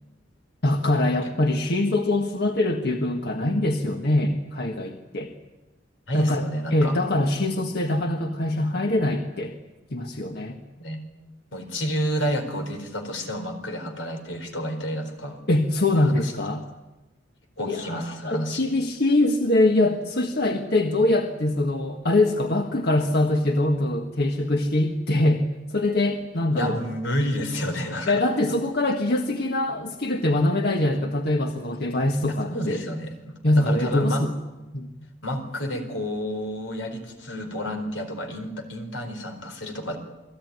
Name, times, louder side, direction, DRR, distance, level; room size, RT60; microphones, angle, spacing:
voice 1, 0.6-5.3 6.1-9.5 9.9-10.6 15.5-16.6 17.6-26.8 28.1-32.8 33.4-34.3 34.7-34.9, left 1 dB, 55° left, 3 dB, 1.6 m, -23 dB
voice 2, 6.1-6.9 10.8-11.0 11.5-15.4 16.0-16.3 17.6-18.7 26.6-28.2 32.5-33.4 33.7-34.2 35.2-40.0, equal, 85° left, 6 dB, 4.5 m, -30 dB
28.5 x 19.5 x 9.6 m, 1.1 s
head